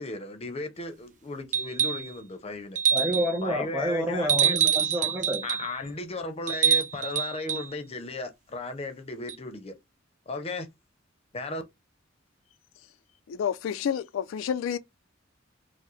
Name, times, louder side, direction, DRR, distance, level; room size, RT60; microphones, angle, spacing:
voice 1, 0.0-2.8 3.4-4.6 5.0-5.1 5.4-9.8 10.3-10.7 11.3-11.6, left 2 dB, 30° left, 0.6 m, -35 dB
sound 1, 1.5-2.1 2.7-3.4 4.3-5.7 6.5-7.7 9.3-9.4, right 8 dB, 40° right, 0.4 m, -25 dB
voice 2, 2.9-5.4, equal, 15° right, 1.0 m, -29 dB
voice 3, 13.3-14.8, left 8 dB, 90° left, 0.3 m, -29 dB
4.6 x 2.1 x 3.1 m
head